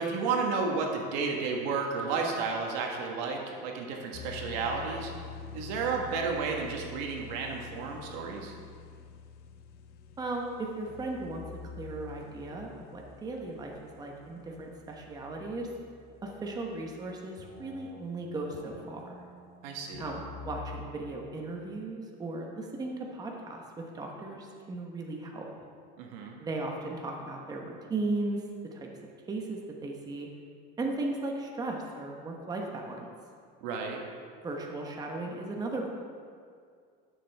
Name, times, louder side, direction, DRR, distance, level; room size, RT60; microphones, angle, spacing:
voice 1, 0.0-5.1 5.5-8.6 19.6-20.1 26.0-26.4 33.6-34.0, right 4 dB, 80° right, 1 dB, 1.4 m, -32 dB
sound 1, 4.1-13.6, left 6 dB, 50° left, 0.7 m, -47 dB
voice 2, 10.2-15.7 16.2-19.2 20.0-25.5 26.4-28.4 28.7-28.9 29.3-30.3 30.8-33.1 34.4-35.9, right 2 dB, 20° right, 0 dB, 1.0 m, -36 dB
sound 2, 10.8-17.1 17.4-20.9, left 4 dB, 70° left, 1.9 m, -49 dB
11.5 x 6.8 x 3.4 m, 2.2 s
cardioid pair, 140°, 21 cm